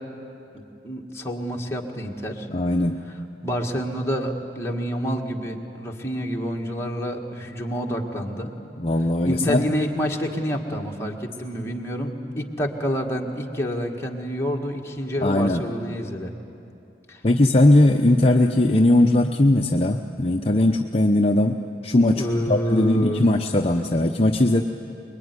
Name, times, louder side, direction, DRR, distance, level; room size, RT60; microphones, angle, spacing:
voice 1, 0.5-2.5 3.4-8.5 9.2-16.3 17.1-17.2 22.2-23.3, equal, 15° left, 0 dB, 1.9 m, -28 dB
voice 2, 2.5-3.0 8.8-9.6 15.2-15.6 17.2-21.6 21.8-24.6, left 1 dB, 35° left, 3 dB, 0.7 m, -19 dB
24.5 x 22.0 x 9.7 m, 2.7 s
head